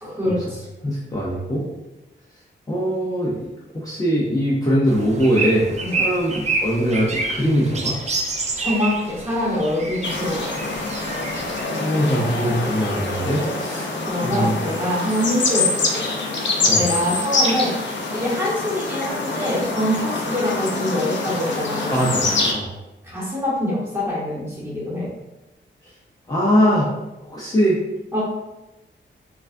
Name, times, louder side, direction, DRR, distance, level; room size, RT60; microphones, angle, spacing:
voice 1, 0.0-0.6 5.8-6.0 8.6-10.5 14.1-16.0 16.7-17.7 18.1-22.1 23.0-25.1 28.1-28.2, left 1 dB, 10° right, -7 dB, 1.1 m, -24 dB
voice 2, 0.8-1.6 2.7-3.5 3.7-8.0 11.8-13.9 14.2-14.6 16.7-16.8 21.9-22.2 22.5-22.7 26.3-26.9 27.3-27.8, equal, 20° left, -7 dB, 0.6 m, -21 dB
sound 1, 4.9-11.6, right 3 dB, 35° right, 0.4 m, -28 dB
sound 2, 10.0-22.5, left 3 dB, 65° left, 0.6 m, -25 dB
4.6 x 2.4 x 2.5 m, 0.99 s
wide cardioid pair, 165°, 20 cm